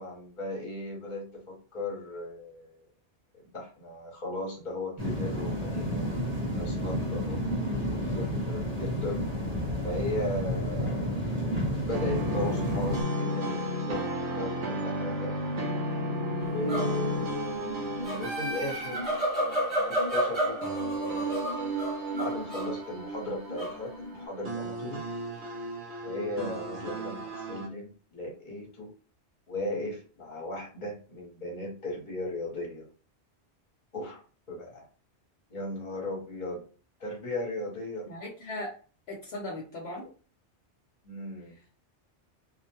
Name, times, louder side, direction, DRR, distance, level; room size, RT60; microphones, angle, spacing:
voice 1, 0.0-2.8 3.4-7.4 7.9-9.2 9.8-11.3 11.7-15.3 16.4-19.1 19.9-20.6 21.0-21.6 22.2-25.1 26.0-28.9 29.5-32.9 33.9-34.2 34.5-34.8 35.5-36.6 37.0-38.1 41.0-41.6, left 1 dB, 45° left, -1 dB, 1.1 m, -37 dB
sound 1, 5.0-13.0, equal, 35° right, 1.0 m, -31 dB
sound 2, 11.9-27.7, equal, 70° right, 0.9 m, -34 dB
sound 3, 16.4-17.1 17.7-22.8 23.5-24.2, right 1 dB, 10° left, 1.1 m, -32 dB
voice 2, 38.1-38.7 39.1-40.1 41.5-41.7, left 1 dB, 65° left, -2 dB, 0.9 m, -38 dB
2.6 x 2.1 x 2.9 m, 0.38 s
omnidirectional pair, 1.2 m